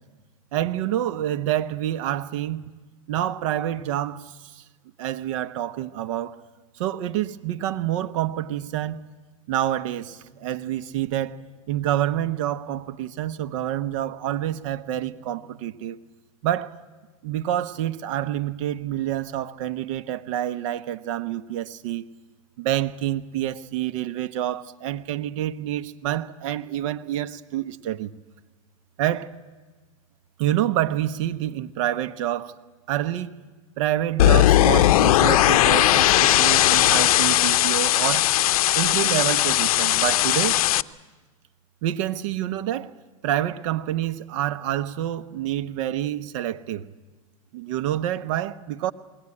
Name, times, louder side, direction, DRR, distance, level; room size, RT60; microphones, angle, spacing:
voice 1, 0.5-2.7 3.1-4.6 5.0-6.4 6.8-9.1 9.5-11.4 11.7-16.0 16.4-16.7 17.2-22.1 22.6-28.1 29.0-29.3 30.4-32.6 32.9-33.4 33.8-38.3 38.7-40.6 41.8-42.9 43.2-46.8 47.5-48.9, right 12 dB, 60° right, 1.1 m, -27 dB
sound 1, 9.8-15.6, right 1 dB, 40° right, 3.1 m, -54 dB
sound 2, 34.2-40.8, left 14 dB, 75° left, 0.6 m, -18 dB
21.0 x 18.0 x 9.8 m
supercardioid pair, 130°, 19 cm